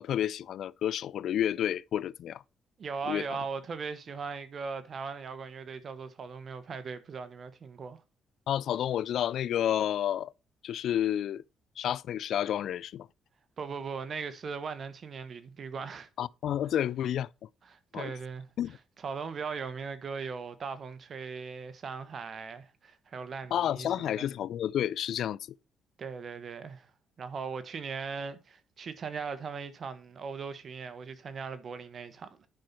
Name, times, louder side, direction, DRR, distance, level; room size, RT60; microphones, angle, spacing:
voice 1, 0.0-2.4 3.1-3.3 8.5-10.3 10.6-11.4 11.8-13.1 16.2-17.3 17.9-18.1 18.6-18.8 23.5-25.4, left 10 dB, 70° left, 0.4 m, -30 dB
voice 2, 2.8-8.0 13.6-16.1 17.6-18.5 19.0-24.2 26.0-26.9 27.2-32.5, right 5 dB, 50° right, 1.4 m, -39 dB
10.5 x 5.6 x 4.4 m
cardioid pair, 90°, 0 cm